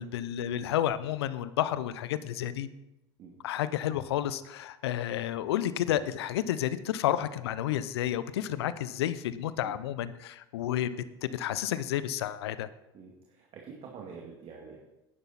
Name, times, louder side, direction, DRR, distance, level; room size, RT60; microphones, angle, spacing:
voice 1, 0.0-2.7 3.4-10.9 11.3-12.7, left 11 dB, 75° left, 15 dB, 0.7 m, -31 dB
voice 2, 12.9-14.8, right 5 dB, 45° right, -1 dB, 2.2 m, -46 dB
11.0 x 10.5 x 4.2 m, 0.93 s
hypercardioid pair, 85°, 13 cm